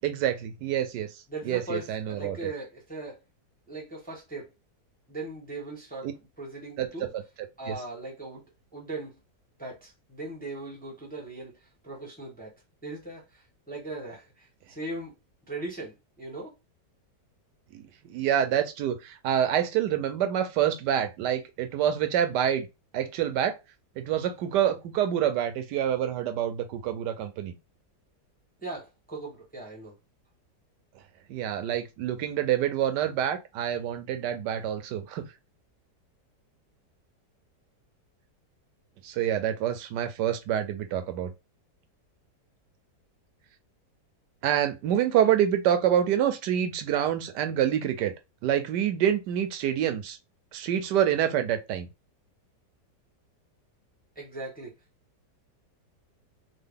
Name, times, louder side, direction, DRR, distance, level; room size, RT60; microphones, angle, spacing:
voice 1, 0.0-1.1 1.4-2.5 6.0-6.1 6.8-7.1 7.7-7.8 17.7-17.8 18.1-22.7 22.9-23.6 24.0-27.5 31.3-35.2 39.0-41.3 44.4-48.1 48.4-50.2 50.5-51.9, right 10 dB, 85° right, 1.2 m, -27 dB
voice 2, 1.3-3.2 3.7-4.5 5.1-6.1 6.4-7.1 7.6-8.4 8.7-9.2 9.6-12.5 12.8-15.2 15.5-16.5 28.6-29.9 54.1-54.7, right 2 dB, 5° left, 0.8 m, -39 dB
3.7 x 2.0 x 3.6 m
omnidirectional pair, 1.8 m